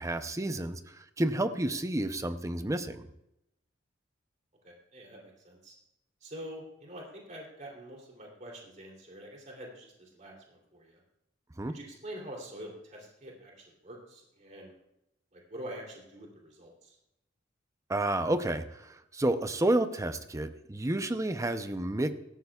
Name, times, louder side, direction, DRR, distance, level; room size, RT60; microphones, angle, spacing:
voice 1, 0.0-3.1 11.6-11.7 17.9-22.1, right 1 dB, 15° right, 9 dB, 0.6 m, -30 dB
voice 2, 4.6-5.7 6.2-11.0 11.7-14.7 15.3-17.0, equal, 40° right, -1 dB, 3.0 m, -46 dB
17.5 x 14.0 x 2.4 m, 0.84 s
head